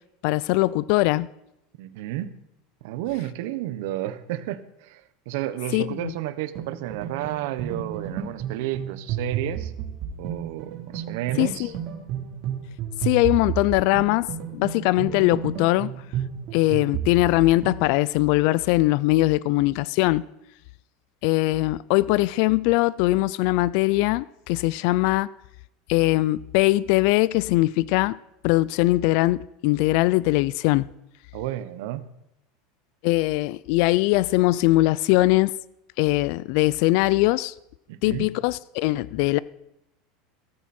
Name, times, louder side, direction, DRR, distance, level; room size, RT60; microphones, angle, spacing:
voice 1, 0.2-1.3 5.7-6.1 11.4-11.7 13.0-15.9 16.5-20.3 21.2-25.3 25.9-28.2 28.4-30.9 33.0-35.5 36.0-37.5 38.0-39.4, left 19 dB, 55° left, 0.4 m, -21 dB
voice 2, 1.8-2.3 2.8-5.0 5.3-9.7 10.2-11.7 31.3-32.1 37.9-38.3, right 14 dB, 65° right, 1.1 m, -31 dB
sound 1, 6.5-17.8, right 9 dB, 45° right, 3.5 m, -32 dB
17.5 x 14.0 x 4.4 m
supercardioid pair, 165°, 0 cm